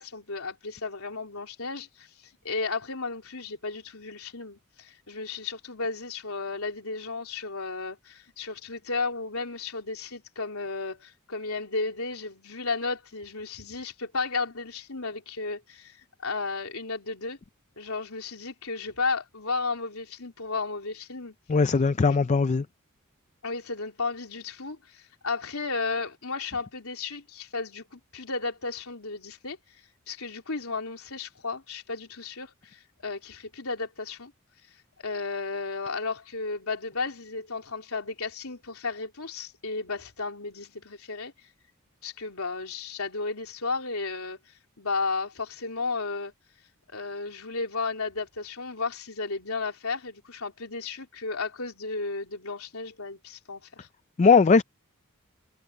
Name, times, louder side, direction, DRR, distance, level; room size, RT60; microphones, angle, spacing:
voice 1, 0.0-16.0 16.2-17.4 17.8-21.4 22.1-22.3 23.4-29.6 30.1-34.3 35.0-41.3 42.0-44.4 44.8-46.3 46.9-53.9, left 4 dB, 85° left, 3.6 m, -33 dB
voice 2, 21.5-22.6 54.2-54.6, left 4 dB, 35° left, 0.4 m, -19 dB
head